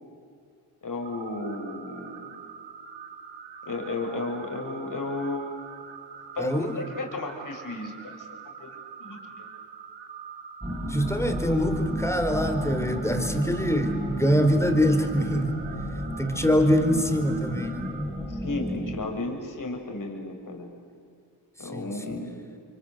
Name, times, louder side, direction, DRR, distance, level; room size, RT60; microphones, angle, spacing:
voice 1, 0.8-2.3 3.6-5.5 6.3-8.1 8.6-8.7 9.0-9.5 18.3-20.7 21.6-22.4, left 2 dB, 45° left, 3 dB, 6.2 m, -34 dB
sound 1, 1.0-18.1, right 6 dB, 85° right, 2.8 m, -44 dB
voice 2, 6.4-6.7 10.9-15.5 16.2-17.9 21.6-22.0, equal, 5° left, 7 dB, 4.1 m, -24 dB
sound 2, 10.6-19.0, equal, 10° right, 5.0 m, -33 dB
29.0 x 25.0 x 8.0 m, 2.4 s
cardioid pair, 55°, 42 cm